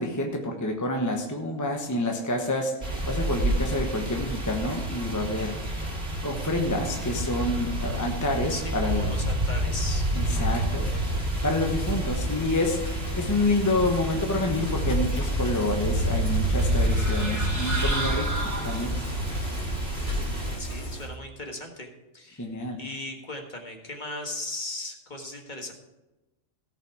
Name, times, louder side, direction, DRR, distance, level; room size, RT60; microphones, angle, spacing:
voice 1, 0.0-5.9 6.2-9.1 10.1-18.9 22.4-22.8, left 2 dB, 15° left, 2 dB, 1.1 m, -28 dB
sound 1, 2.8-20.6, right 1 dB, 55° right, 2.8 m, -29 dB
voice 2, 8.5-10.1 19.9-20.3 20.6-21.9 22.1-22.5 22.8-25.7, left 2 dB, 40° left, 3 dB, 1.7 m, -37 dB
Bicycle, 9.4-21.1, left 1 dB, 65° left, 3.3 m, -35 dB
sound 2, 16.6-19.2, right 2 dB, 15° right, 1.6 m, -33 dB
17.0 x 5.7 x 4.8 m, 1.0 s
omnidirectional pair, 1.3 m